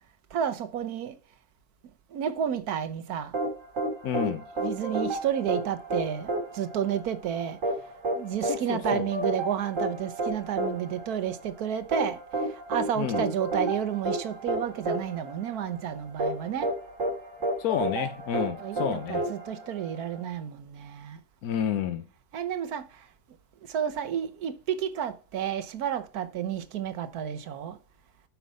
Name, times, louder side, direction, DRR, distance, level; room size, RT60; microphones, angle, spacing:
voice 1, 0.3-1.1 2.1-3.3 4.6-7.6 8.1-12.2 12.5-16.7 18.4-21.2 22.3-23.1 23.6-27.8, right 9 dB, 80° right, 1.4 m, -31 dB
sound 1, 3.3-20.2, right 1 dB, 55° right, 3.1 m, -31 dB
voice 2, 4.0-4.4 8.4-9.1 13.0-13.2 17.6-19.2 21.4-22.0, left 9 dB, 85° left, 1.3 m, -30 dB
8.7 x 5.7 x 5.3 m
omnidirectional pair, 1.6 m